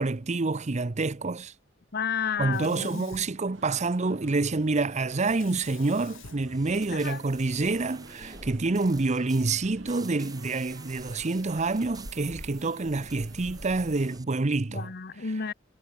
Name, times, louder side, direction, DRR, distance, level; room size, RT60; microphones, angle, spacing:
voice 1, 0.0-1.5 2.4-14.9, right 3 dB, 35° right, 0.7 m, -27 dB
voice 2, 1.9-3.3 6.9-7.2 14.7-15.5, left 6 dB, 50° left, 0.9 m, -32 dB
Sink (filling or washing), 2.5-4.1 5.2-7.5, left 6 dB, 70° left, 1.4 m, -50 dB
sound 1, 3.5-14.2, right 1 dB, 65° right, 6.4 m, -48 dB
sound 2, 6.3-14.2, right 4 dB, 20° right, 6.7 m, -49 dB
head